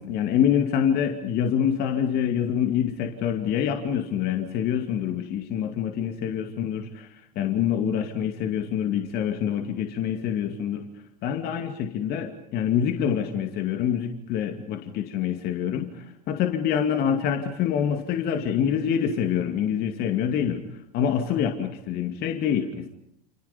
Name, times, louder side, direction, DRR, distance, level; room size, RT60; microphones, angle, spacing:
voice 1, 0.0-10.9 11.2-20.6 20.9-22.9, left 8 dB, 50° left, 5 dB, 2.4 m, -26 dB
28.5 x 28.5 x 5.4 m, 0.73 s
hypercardioid pair, 80°, 21 cm